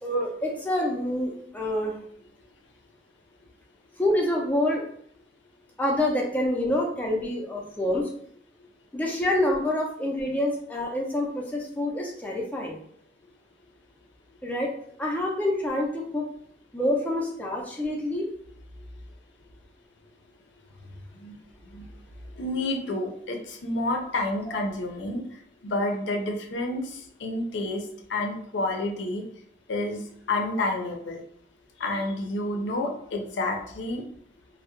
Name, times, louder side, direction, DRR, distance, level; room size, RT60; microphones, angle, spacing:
voice 1, 0.0-2.0 4.0-4.8 5.8-8.1 8.9-12.8 14.4-14.7 15.0-16.2 16.7-18.3, left 1 dB, 10° left, -2 dB, 0.4 m, -27 dB
voice 2, 22.3-29.2 29.7-31.2 31.8-34.0, left 2 dB, 80° left, 3 dB, 0.5 m, -30 dB
2.2 x 2.0 x 2.9 m, 0.64 s
head